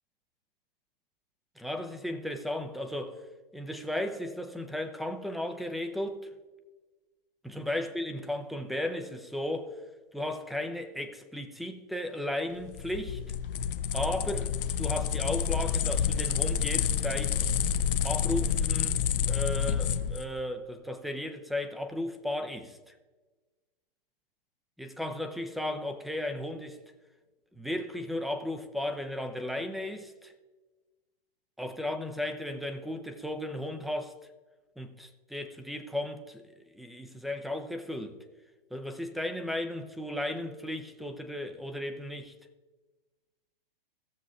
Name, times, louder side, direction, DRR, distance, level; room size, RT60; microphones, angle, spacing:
voice 1, 1.6-3.2 3.5-6.2 7.4-9.7 10.1-13.2 13.9-17.4 18.0-19.0 19.3-22.9 24.8-26.8 27.6-30.3 31.6-34.1 34.8-36.4 36.7-38.2 38.7-42.3, left 1 dB, ahead, 0.5 m, -35 dB
sound 1, 12.6-20.3, left 8 dB, 65° left, 0.6 m, -29 dB
16.5 x 7.0 x 2.5 m
hypercardioid pair, 120°, 29 cm